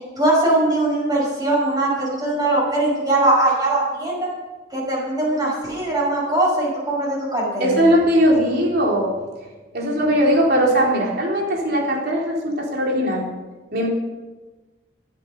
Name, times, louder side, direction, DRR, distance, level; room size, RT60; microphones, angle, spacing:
voice 1, 0.2-4.3 4.7-7.7, right 2 dB, 20° right, -5 dB, 5.9 m, -21 dB
voice 2, 7.6-9.1 9.7-13.3 13.7-13.9, equal, 55° right, -1 dB, 4.0 m, -19 dB
15.5 x 12.0 x 5.5 m, 1.2 s
head